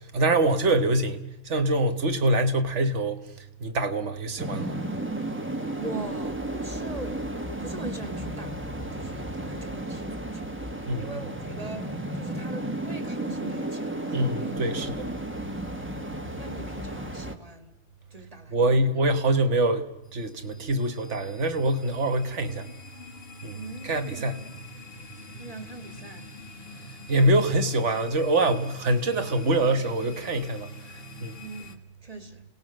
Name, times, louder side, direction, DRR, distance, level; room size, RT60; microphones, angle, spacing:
voice 1, 0.1-3.2 3.6-4.8 10.9-11.2 14.1-15.1 18.5-22.7 23.4-23.6 23.9-24.4 27.1-30.7 31.2-31.4, right 2 dB, 90° right, 1.7 m, -24 dB
sound 1, 4.4-17.4, right 1 dB, 10° right, 1.5 m, -33 dB
voice 2, 5.7-8.6 8.9-14.5 16.4-17.8 18.1-18.9 23.5-24.7 25.4-26.3 31.4-32.4, right 3 dB, 30° right, 2.0 m, -41 dB
sound 2, 20.0-31.7, left 4 dB, 55° left, 1.7 m, -46 dB
29.0 x 18.5 x 6.4 m
omnidirectional pair, 1.2 m